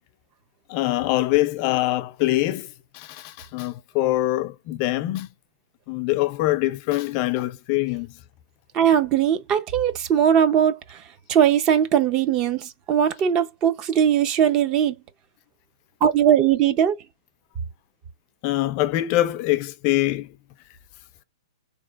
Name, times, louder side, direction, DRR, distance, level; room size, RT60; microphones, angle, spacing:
voice 1, 0.7-2.7 2.9-5.3 5.9-8.1 18.4-20.3, left 16 dB, 30° left, 0.4 m, -24 dB
voice 2, 8.7-11.0 11.3-15.0 16.0-17.0, right 9 dB, 25° right, 0.5 m, -20 dB
4.3 x 3.1 x 2.3 m
hypercardioid pair, 160°, 3 cm